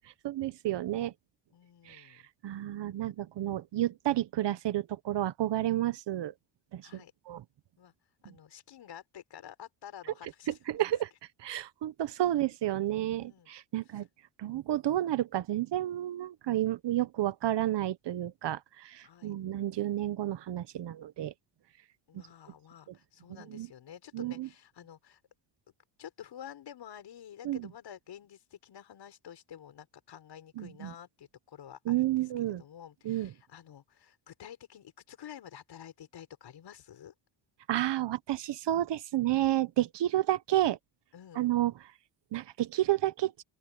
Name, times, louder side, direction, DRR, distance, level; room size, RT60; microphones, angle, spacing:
voice 1, 0.2-1.1 1.9-2.0 2.4-6.3 6.7-7.0 7.3-7.4 10.7-11.1 11.4-14.1 14.4-21.3 23.5-23.7 24.1-24.5 27.4-27.7 30.6-30.9 31.9-32.6 33.0-33.3 37.7-40.8 41.3-41.7 42.3-43.3, right 14 dB, 60° right, 1.0 m, -30 dB
voice 2, 1.5-2.3 6.8-7.1 7.8-10.8 12.3-12.4 13.2-13.5 13.8-14.1 19.0-19.3 22.1-25.2 26.0-37.1 41.1-41.5, left 9 dB, 60° left, 5.6 m, -50 dB
open air
cardioid pair, 135°, 47 cm